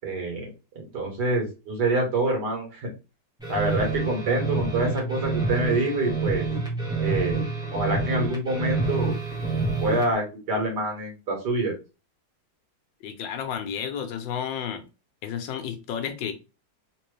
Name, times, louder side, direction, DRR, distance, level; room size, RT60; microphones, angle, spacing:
voice 1, 0.0-2.9 3.5-6.5 7.0-7.4 7.7-9.1 9.8-11.7, right 2 dB, 65° right, 2.1 m, -26 dB
sound 1, 3.4-10.1, right 3 dB, 5° right, 0.9 m, -28 dB
voice 2, 13.0-14.8 15.2-16.3, left 8 dB, 90° left, 1.5 m, -32 dB
3.9 x 3.0 x 3.2 m
omnidirectional pair, 2.0 m